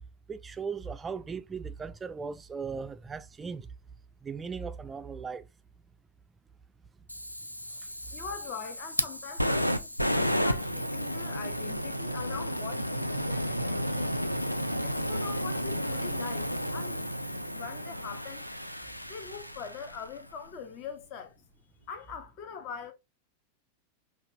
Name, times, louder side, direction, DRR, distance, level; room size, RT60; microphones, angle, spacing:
voice 1, 0.3-3.7 4.2-5.4, right 5 dB, 15° right, 0.4 m, -37 dB
Fire, 7.1-20.2, equal, 90° left, 0.3 m, -32 dB
voice 2, 8.1-14.1 14.8-17.0 17.5-18.4 19.1-21.4 21.9-22.9, left 6 dB, 40° left, 0.7 m, -42 dB
5.7 x 2.4 x 2.6 m
figure-of-eight pair, 90°, 0 cm